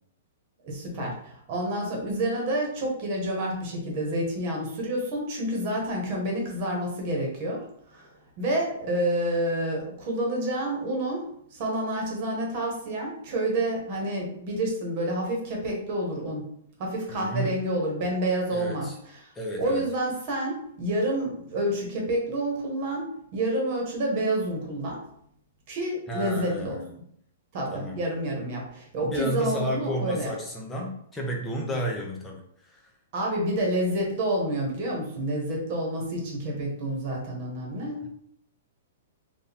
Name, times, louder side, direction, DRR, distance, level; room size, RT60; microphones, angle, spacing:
voice 1, 0.6-8.1 8.4-16.5 16.8-19.3 19.6-25.0 25.7-26.8 27.5-30.3 33.1-38.1, right 1 dB, 35° right, 0 dB, 1.3 m, -29 dB
voice 2, 17.1-17.6 18.5-18.9 19.3-19.8 26.1-26.9 27.7-28.0 29.0-32.8 38.0-38.1, equal, 10° left, -1 dB, 0.7 m, -32 dB
4.8 x 2.6 x 3.5 m, 0.69 s
hypercardioid pair, 165°, 0 cm